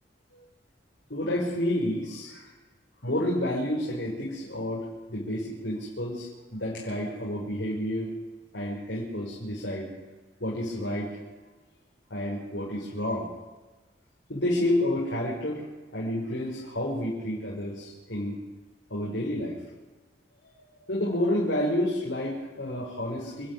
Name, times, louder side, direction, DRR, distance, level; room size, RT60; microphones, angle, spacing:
voice 1, 1.1-2.5 3.0-8.1 8.5-9.9 10.4-11.2 12.1-13.3 14.3-15.6 15.9-18.4 18.9-19.6 20.4-20.5 20.8-23.5, left 1 dB, 80° left, -5 dB, 5.6 m, -30 dB
29.0 x 10.5 x 9.6 m, 1.2 s
head